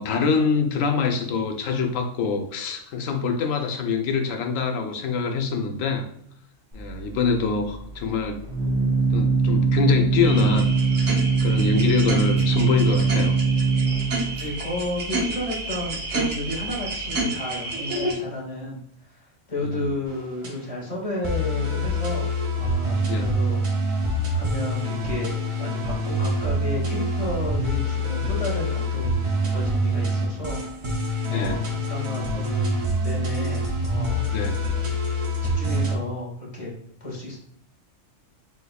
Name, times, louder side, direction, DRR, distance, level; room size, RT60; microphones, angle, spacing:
voice 1, 0.0-6.1 6.7-8.4 9.1-10.7 11.0-11.1 11.4-13.3 19.6-19.9 23.1-23.3 31.3-31.6 34.3-34.6, left 5 dB, 85° left, 4 dB, 1.0 m, -25 dB
Organ, 6.7-17.2, right 4 dB, 25° right, 0.7 m, -23 dB
sound 1, 10.2-18.1, right 2 dB, 65° right, 1.2 m, -30 dB
voice 2, 14.4-22.3 22.6-23.6 24.3-30.6 31.3-34.3 34.6-34.8 35.4-36.7 37.0-37.4, left 1 dB, 30° left, -3 dB, 1.1 m, -32 dB
sound 2, 20.1-20.5 21.2-36.0, equal, 45° right, 0.4 m, -25 dB
3.4 x 3.4 x 2.3 m, 0.67 s
omnidirectional pair, 1.3 m